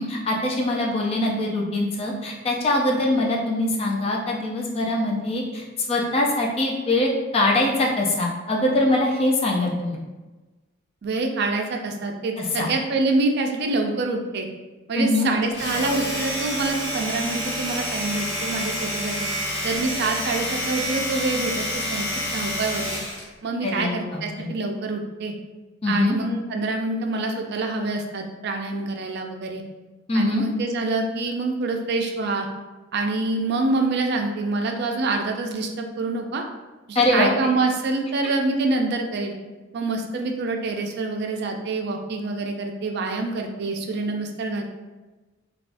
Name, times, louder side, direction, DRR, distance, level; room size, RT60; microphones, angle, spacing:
voice 1, 0.0-10.0 12.4-12.7 15.0-15.3 23.6-24.5 25.8-26.2 30.1-30.4 36.9-37.3, left 1 dB, 30° left, -2 dB, 0.4 m, -23 dB
voice 2, 11.0-14.5 14.9-19.3 19.6-23.0 23.4-25.3 25.9-29.6 30.1-32.5 32.9-36.4 36.9-39.3 39.7-44.6, right 3 dB, 55° right, 3 dB, 0.4 m, -26 dB
Domestic sounds home sounds, 15.4-23.3, equal, 55° left, 1.4 m, -28 dB
3.4 x 2.3 x 2.5 m, 1.2 s
head